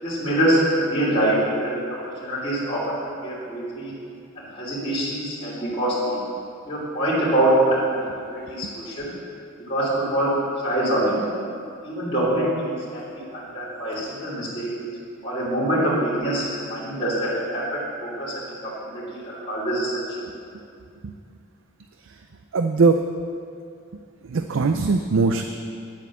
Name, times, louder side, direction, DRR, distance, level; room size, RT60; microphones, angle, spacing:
voice 1, 0.0-1.8 2.2-2.9 3.2-3.9 4.5-6.2 6.7-7.8 8.3-9.1 9.7-11.2 11.8-14.7 15.2-18.3 18.6-20.0, right 1 dB, 30° left, -10 dB, 3.0 m, -24 dB
voice 2, 22.5-23.0 24.3-25.4, right 4 dB, 75° right, 7 dB, 0.5 m, -20 dB
9.6 x 8.0 x 7.3 m, 2.4 s
head